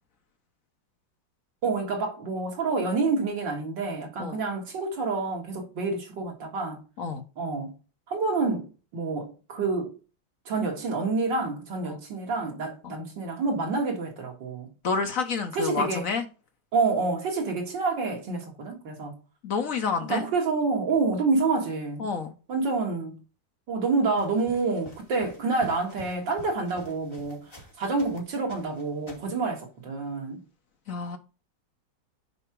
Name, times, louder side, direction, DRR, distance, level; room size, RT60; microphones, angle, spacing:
voice 1, 1.6-6.8 7.4-7.8 8.1-9.9 10.5-14.7 15.6-16.0 16.7-19.2 20.1-22.0 22.5-23.2 23.7-30.4, right 3 dB, 75° right, 2.6 m, -28 dB
voice 2, 14.8-16.2 19.4-20.2 22.0-22.3 30.9-31.2, left 5 dB, 55° left, 1.1 m, -29 dB
sound 1, 24.2-28.2 28.5-29.4, right 1 dB, 15° left, 2.2 m, -48 dB
6.9 x 4.8 x 4.5 m
omnidirectional pair, 2.0 m